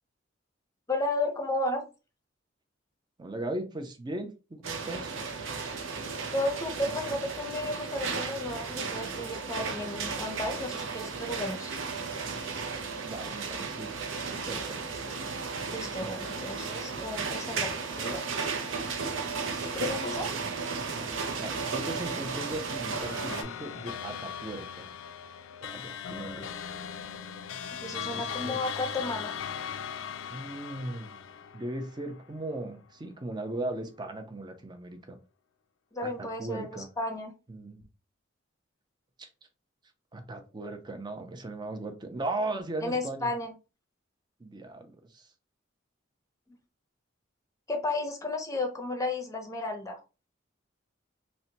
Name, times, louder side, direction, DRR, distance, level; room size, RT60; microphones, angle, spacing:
voice 1, 0.9-1.8 6.3-11.7 15.7-18.2 19.6-20.3 27.7-29.4 35.9-37.3 42.8-43.5 46.5-46.6 47.7-50.0, left 2 dB, 15° left, 4 dB, 0.7 m, -33 dB
voice 2, 3.2-5.1 13.0-13.9 14.5-15.1 21.4-24.9 25.6-26.5 28.1-28.6 30.3-31.2 31.5-35.2 36.0-36.9 37.5-37.8 39.2-39.3 40.1-43.3 44.4-45.3, right 2 dB, 25° right, 5 dB, 0.5 m, -37 dB
sound 1, 4.6-23.4, right 4 dB, 75° right, 0.6 m, -34 dB
sound 2, 22.9-32.5, left 8 dB, 80° left, 0.4 m, -39 dB
2.7 x 2.1 x 4.0 m, 0.31 s
head